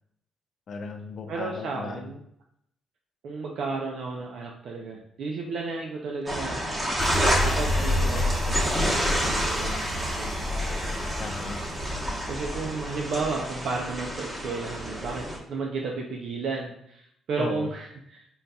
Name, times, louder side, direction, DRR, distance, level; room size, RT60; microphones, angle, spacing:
voice 1, 0.7-2.1 11.2-11.6 17.4-17.7, left 4 dB, 55° left, 4 dB, 0.6 m, -35 dB
voice 2, 1.3-2.2 3.2-6.6 7.4-10.5 12.3-18.3, right 4 dB, 70° right, -1 dB, 0.5 m, -33 dB
sound 1, 6.3-15.4, equal, 20° right, 1.0 m, -29 dB
sound 2, 7.0-12.6 13.0-13.1, left 1 dB, 5° left, 1.0 m, -29 dB
4.0 x 3.9 x 2.3 m, 0.72 s
cardioid pair, 90°, 0 cm